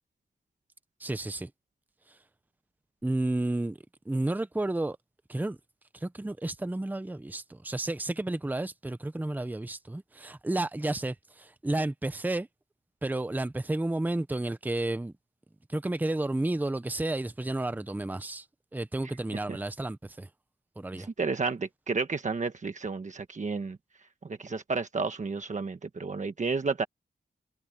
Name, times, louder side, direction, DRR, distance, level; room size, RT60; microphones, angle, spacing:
voice 1, 1.0-1.5 2.1-2.2 3.0-3.8 4.1-5.0 5.3-5.6 5.9-12.5 13.0-15.1 15.7-18.5 18.7-20.3 20.8-21.1, right 2 dB, 10° right, 0.7 m, -31 dB
voice 2, 21.0-23.8 24.2-26.8, right 4 dB, 40° right, 1.3 m, -31 dB
wide cardioid pair, 160°, 18 cm